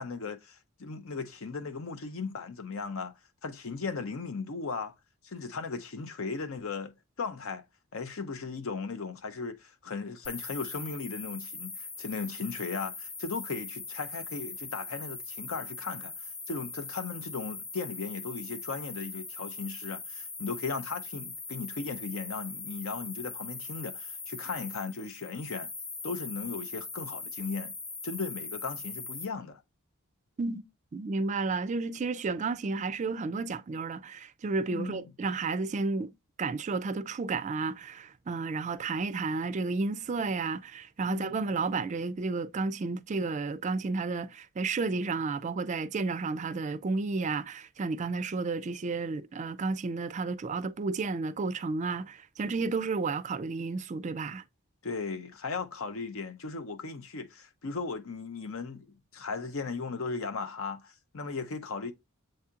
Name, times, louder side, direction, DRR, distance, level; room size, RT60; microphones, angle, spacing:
voice 1, 0.0-3.1 3.4-4.9 5.2-7.6 7.9-25.7 26.0-27.7 28.0-29.6 34.7-35.0 41.1-41.3 54.8-61.9, left 4 dB, 70° left, 0.7 m, -37 dB
sound 1, 10.2-29.2, left 4 dB, 25° left, 0.7 m, -41 dB
voice 2, 30.9-36.1 36.4-54.4, right 4 dB, 35° right, 0.3 m, -32 dB
7.5 x 2.8 x 2.4 m
head